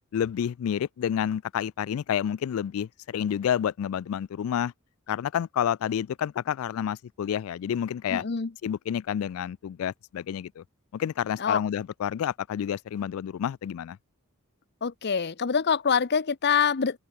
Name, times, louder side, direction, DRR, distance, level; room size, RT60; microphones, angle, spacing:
voice 1, 0.1-4.7 5.1-8.2 8.6-10.6 10.9-14.0, left 9 dB, 70° left, 0.3 m, -29 dB
voice 2, 8.1-8.5 11.4-11.6 14.8-17.0, left 6 dB, 50° left, 0.7 m, -25 dB
head